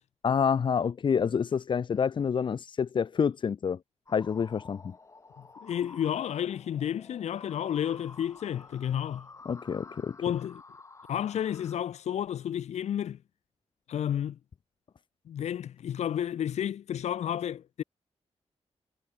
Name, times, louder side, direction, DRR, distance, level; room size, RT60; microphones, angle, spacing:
voice 1, 0.2-3.8 4.1-4.9 9.5-10.2, left 6 dB, 45° left, 0.8 m, -28 dB
sound 1, 4.1-11.8, left 3 dB, 25° left, 3.8 m, -51 dB
voice 2, 5.6-9.3 10.2-10.6 11.1-13.2 13.9-14.4 15.3-17.8, left 10 dB, 85° left, 0.9 m, -31 dB
wide cardioid pair, 140°, 11 cm